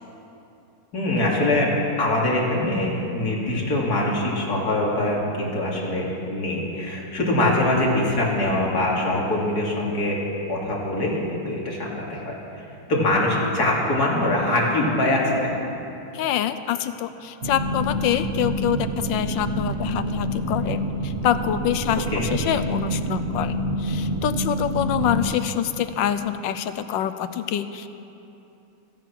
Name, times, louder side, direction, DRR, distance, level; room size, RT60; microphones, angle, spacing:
voice 1, 0.9-10.2 10.5-12.4 12.9-15.5 22.1-22.3, left 1 dB, 50° left, -4 dB, 3.2 m, -23 dB
voice 2, 16.1-27.9, left 10 dB, 80° left, 11 dB, 1.3 m, -26 dB
sound 1, 17.4-25.3, right 1 dB, 45° right, 0.7 m, -27 dB
16.0 x 15.0 x 6.0 m, 2.9 s
omnidirectional pair, 2.1 m